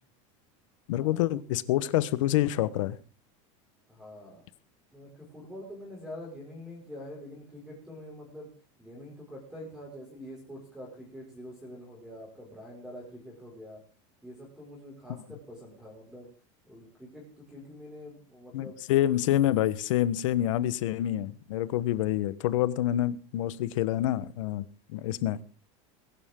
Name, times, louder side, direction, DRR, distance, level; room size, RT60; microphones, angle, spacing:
voice 1, 0.9-3.0 18.5-25.4, left 13 dB, 90° left, 1.3 m, -27 dB
voice 2, 3.9-4.4 4.9-8.5 8.8-13.8 14.2-16.3 16.7-19.0, left 1 dB, 5° right, 5.6 m, -45 dB
22.0 x 11.5 x 3.8 m
supercardioid pair, 170°, 16 cm